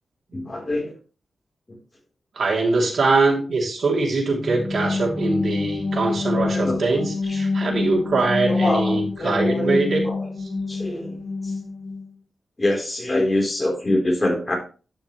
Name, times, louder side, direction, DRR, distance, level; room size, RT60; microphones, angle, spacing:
voice 1, 0.3-0.9 6.3-6.8 7.3-7.4 8.4-10.3 10.7-11.5 12.6-14.6, left 1 dB, 25° left, 0 dB, 4.0 m, -25 dB
voice 2, 2.3-10.0, right 3 dB, 65° right, -2 dB, 3.1 m, -22 dB
sound 1, 4.3-12.1, left 3 dB, 55° left, 3.8 m, -27 dB
12.0 x 6.1 x 3.2 m, 0.35 s
wide cardioid pair, 110°, 0 cm